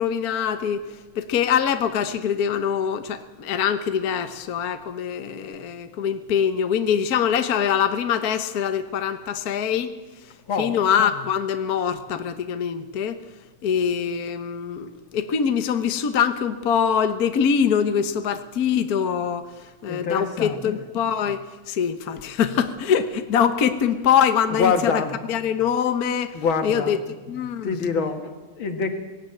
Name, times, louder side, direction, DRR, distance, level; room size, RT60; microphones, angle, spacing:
voice 1, 0.0-10.0 10.6-13.2 13.6-25.0 25.3-27.0 27.3-27.7, left 8 dB, 55° left, 8 dB, 1.4 m, -24 dB
voice 2, 19.9-20.6 24.5-25.2 26.3-26.9 27.6-28.9, left 5 dB, 75° left, 6 dB, 2.6 m, -25 dB
20.0 x 16.5 x 9.0 m, 1.2 s
omnidirectional pair, 2.2 m